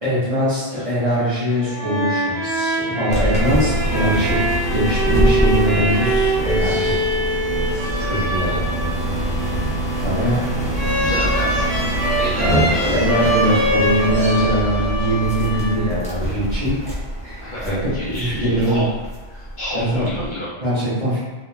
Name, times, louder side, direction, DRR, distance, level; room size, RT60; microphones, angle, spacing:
voice 1, 0.0-7.0 8.0-8.6 10.0-10.5 12.4-17.0 17.2-18.9 19.7-20.1 20.6-21.2, right 1 dB, 35° right, -10 dB, 0.8 m, -22 dB
sound 1, 1.5-16.2, right 1 dB, 60° right, 1.3 m, -24 dB
sound 2, 3.1-20.3, right 1 dB, 10° left, 0.5 m, -24 dB
voice 2, 7.8-8.6 11.0-11.7 12.2-13.0 17.4-18.9 19.3-20.5, left 1 dB, 55° left, -8 dB, 0.7 m, -31 dB
2.9 x 2.2 x 2.3 m, 1.2 s
omnidirectional pair, 1.1 m